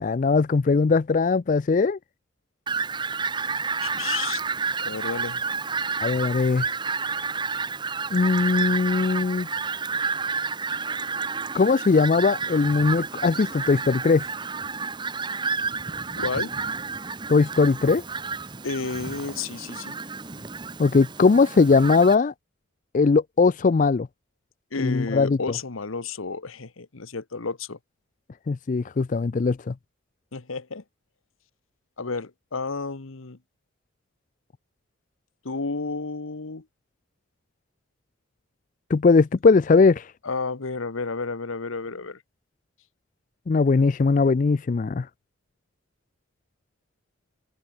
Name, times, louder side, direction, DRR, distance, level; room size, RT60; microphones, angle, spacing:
voice 1, 0.0-2.0 6.0-6.7 8.1-9.5 11.5-14.2 17.3-18.0 20.8-22.3 22.9-24.1 24.8-25.4 28.5-29.7 38.9-40.1 43.5-45.1, left 4 dB, 40° left, 0.4 m, -20 dB
Fowl, 2.7-22.1, right 5 dB, 25° right, 0.8 m, -30 dB
voice 2, 3.8-4.4 4.8-5.4 16.2-16.5 18.6-20.0 24.7-27.8 30.3-30.8 32.0-33.4 35.4-36.6 40.2-42.2, left 4 dB, 90° left, 1.2 m, -31 dB
open air
head